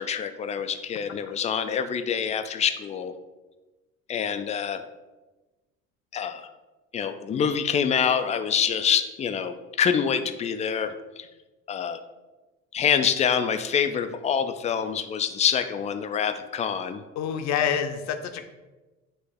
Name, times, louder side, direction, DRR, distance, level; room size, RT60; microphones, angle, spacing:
voice 1, 0.0-3.1 4.1-4.8 6.1-6.5 6.9-11.3 11.7-12.0 12.7-17.0, left 7 dB, 20° left, 8 dB, 0.3 m, -26 dB
voice 2, 17.2-18.4, left 8 dB, 45° left, 7 dB, 0.7 m, -27 dB
9.1 x 3.3 x 3.5 m, 1.2 s
figure-of-eight pair, 60°, 41 cm